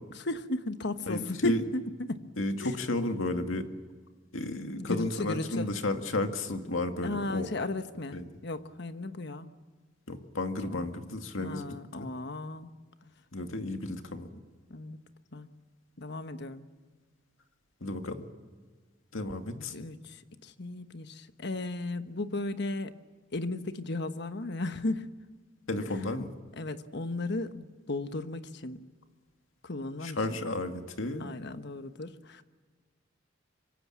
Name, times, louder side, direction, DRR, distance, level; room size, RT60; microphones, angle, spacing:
voice 1, 0.1-2.2 2.6-2.7 4.7-5.7 7.0-9.5 10.6-10.9 11.4-12.7 14.7-15.0 15.3-15.5 16.0-16.6 19.5-22.9 23.3-25.1 25.9-26.0 26.6-28.8 29.6-30.4 31.2-32.4, left 2 dB, 60° left, 10 dB, 1.3 m, -35 dB
voice 2, 1.1-1.6 2.4-3.7 4.3-7.5 8.1-8.2 10.1-12.1 13.3-14.3 17.8-18.2 19.1-19.7 25.7-26.3 30.0-31.3, left 2 dB, 90° left, 6 dB, 2.2 m, -33 dB
25.5 x 24.5 x 7.5 m, 1.4 s
head